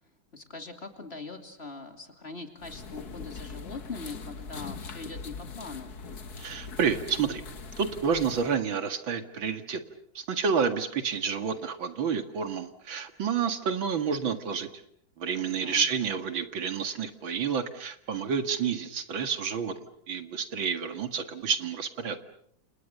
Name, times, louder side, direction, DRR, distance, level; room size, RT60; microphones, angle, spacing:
voice 1, 0.3-5.9 15.4-15.9, left 3 dB, 30° left, 6 dB, 3.1 m, -42 dB
sound 1, 2.6-8.6, left 4 dB, 55° left, 2.0 m, -42 dB
voice 2, 6.4-7.4 7.8-9.8 10.1-14.7 15.2-19.7 20.1-22.2, right 6 dB, 85° right, 9 dB, 2.7 m, -29 dB
29.0 x 28.5 x 6.7 m, 0.68 s
omnidirectional pair, 2.1 m